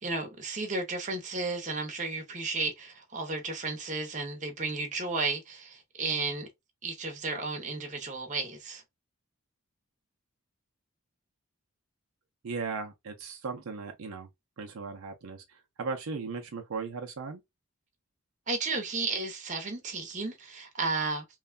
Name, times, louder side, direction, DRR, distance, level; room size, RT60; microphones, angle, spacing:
voice 1, 0.0-6.5 6.8-8.8 18.5-21.2, right 3 dB, 35° right, 0.7 m, -33 dB
voice 2, 12.4-14.3 14.6-17.4, right 4 dB, 75° right, 0.5 m, -37 dB
3.1 x 2.2 x 2.3 m
head